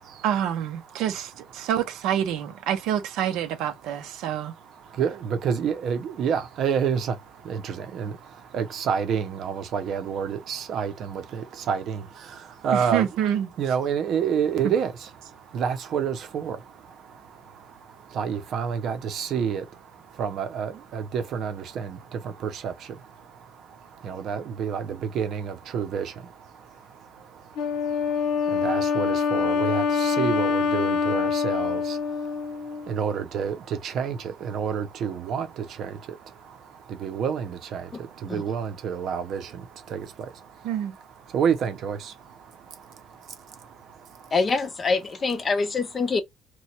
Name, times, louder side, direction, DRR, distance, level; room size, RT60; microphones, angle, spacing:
voice 1, 0.2-4.5 12.7-13.5 14.6-14.7 40.6-41.0, right 10 dB, 90° right, 0.7 m, -27 dB
voice 2, 5.0-7.1 7.5-7.6 7.9-8.1 8.5-11.2 11.7-12.0 12.6-13.1 13.6-14.9 15.5-16.6 18.2-19.6 20.2-21.9 22.6-22.7 24.0-24.8 25.1-26.1 28.6-31.8 32.9-33.5 33.8-34.2 34.4-35.5 37.0-37.8 38.3-39.4 39.9-40.0 41.3-42.0, right 7 dB, 45° right, 0.7 m, -27 dB
Wind instrument woodwind instrument, 27.6-33.0, left 5 dB, 85° left, 0.8 m, -25 dB
voice 3, 44.3-46.2, left 4 dB, 25° left, 0.4 m, -25 dB
2.9 x 2.3 x 4.2 m
cardioid pair, 180°, 0 cm